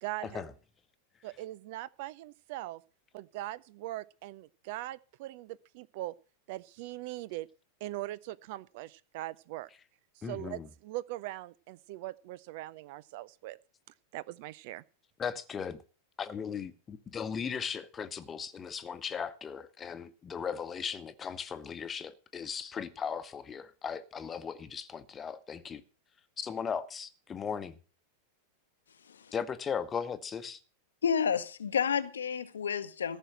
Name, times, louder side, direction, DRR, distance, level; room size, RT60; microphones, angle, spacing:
voice 1, 0.0-0.4 1.2-2.8 3.1-6.1 6.5-7.5 7.8-9.7 10.3-13.6 14.1-14.8, right 16 dB, 50° right, 0.5 m, -41 dB
voice 2, 10.2-10.7 15.2-15.8 16.2-25.8 26.4-27.7 29.3-30.6, left 6 dB, 20° left, 1.1 m, -37 dB
voice 3, 31.0-33.2, left 7 dB, 70° left, 0.9 m, -30 dB
14.0 x 6.3 x 7.6 m
figure-of-eight pair, 90°, 0 cm